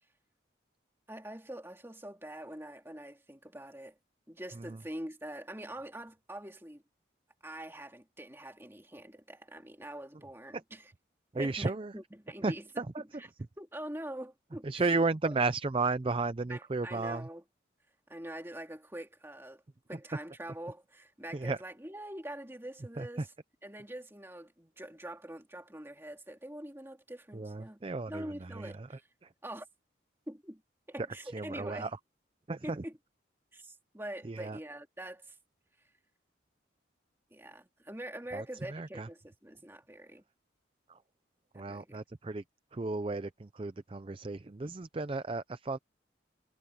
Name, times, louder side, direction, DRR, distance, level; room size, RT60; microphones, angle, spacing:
voice 1, 1.1-4.0 4.3-6.8 7.4-10.9 11.3-13.3 13.6-14.9 16.5-17.4 18.1-19.6 19.9-23.3 23.6-27.8 28.1-29.0 29.4-29.7 30.3-30.6 30.9-31.9 32.6-32.9 33.5-35.4 37.3-40.2 41.5-42.0, right 1 dB, 15° right, 2.5 m, -44 dB
voice 2, 11.3-11.9 12.4-13.0 14.6-17.3 21.3-21.6 23.0-23.1 27.3-28.9 29.2-29.3 31.3-31.9 32.5-32.8 34.2-34.6 38.3-38.4 38.7-39.1 40.9-41.0 41.6-42.4 42.7-45.8, right 3 dB, 30° right, 0.5 m, -34 dB
head